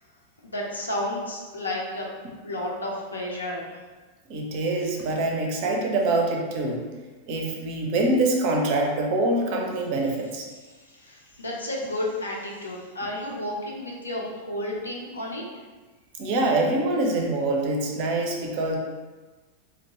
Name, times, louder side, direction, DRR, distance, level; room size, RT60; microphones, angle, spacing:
voice 1, 0.4-2.1 2.4-3.8 10.8-15.4, left 1 dB, 80° left, -3 dB, 0.5 m, -32 dB
voice 2, 4.3-6.9 7.3-10.5 16.2-18.8, right 2 dB, 45° right, 1 dB, 0.5 m, -25 dB
2.6 x 2.2 x 2.9 m, 1.3 s
figure-of-eight pair, 90°, 0 cm